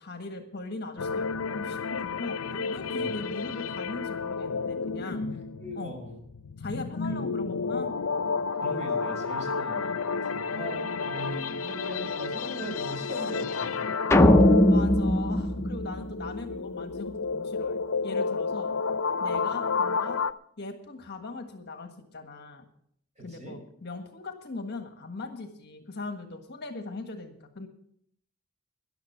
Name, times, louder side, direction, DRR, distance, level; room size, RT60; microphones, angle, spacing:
voice 1, 0.0-5.2 5.7-5.9 6.6-7.9 14.7-18.7 19.2-20.2 20.6-22.6 23.2-27.7, left 3 dB, 50° left, 6 dB, 1.5 m, -39 dB
sound 1, 1.0-20.3, left 4 dB, 75° left, 0.6 m, -31 dB
voice 2, 5.6-6.1 7.1-7.2 8.6-13.8 23.2-23.6, equal, 30° right, 2 dB, 5.3 m, -40 dB
sound 2, 14.1-16.6, left 1 dB, 10° left, 0.6 m, -20 dB
14.0 x 10.5 x 5.8 m, 0.66 s
head